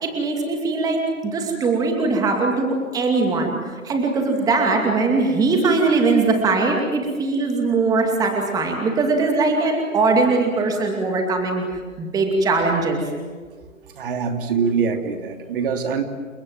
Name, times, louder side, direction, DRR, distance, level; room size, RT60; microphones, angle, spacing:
voice 1, 0.0-3.5 3.8-13.0, right 3 dB, 10° right, 2 dB, 2.5 m, -21 dB
voice 2, 14.0-16.0, right 5 dB, 40° right, 5 dB, 3.0 m, -23 dB
29.5 x 25.0 x 7.6 m, 1.5 s
figure-of-eight pair, 135°, 40 cm